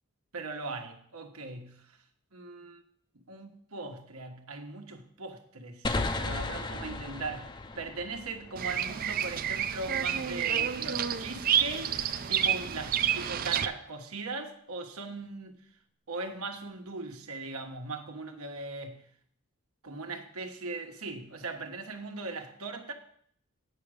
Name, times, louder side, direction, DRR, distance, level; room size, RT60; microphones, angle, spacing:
voice 1, 0.3-2.0 2.3-2.8 3.3-15.6 16.1-19.1 19.8-22.9, right 3 dB, 80° right, 1.3 m, -39 dB
sound 1, 5.8-9.3, left 2 dB, 20° left, 0.5 m, -35 dB
Bird vocalization bird call bird song, 8.6-13.7, right 9 dB, 40° right, 0.4 m, -29 dB
8.8 x 6.1 x 6.4 m
head